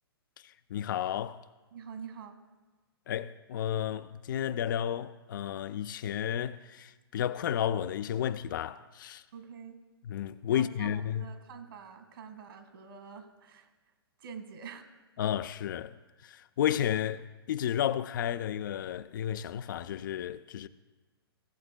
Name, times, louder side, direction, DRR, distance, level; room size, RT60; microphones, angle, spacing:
voice 1, 0.4-1.4 3.1-9.2 10.0-11.3 15.2-16.0 16.2-20.7, left 10 dB, 55° left, 0.4 m, -32 dB
voice 2, 1.7-2.4 9.3-9.8 10.5-13.7 14.2-14.9, right 6 dB, 60° right, 1.8 m, -46 dB
17.0 x 7.8 x 2.2 m
hypercardioid pair, 125°, 13 cm